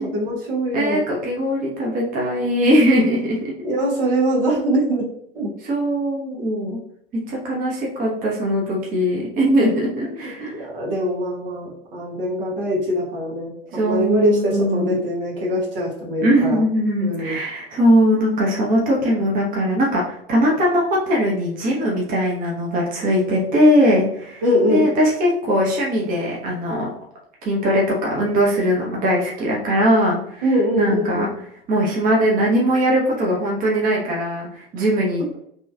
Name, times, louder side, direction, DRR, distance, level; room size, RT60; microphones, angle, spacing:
voice 1, 0.0-1.0 3.6-5.1 5.3-5.5 10.2-16.6 17.0-17.4 24.4-24.9 30.4-31.4, equal, 65° right, -3 dB, 1.3 m, -22 dB
voice 2, 0.7-3.7 5.6-6.8 7.3-10.6 13.7-15.0 16.2-26.9 27.4-30.5 30.8-31.3 31.7-35.3, equal, 30° right, -2 dB, 0.9 m, -20 dB
3.0 x 3.0 x 2.3 m, 0.70 s
figure-of-eight pair, 80°, 30 cm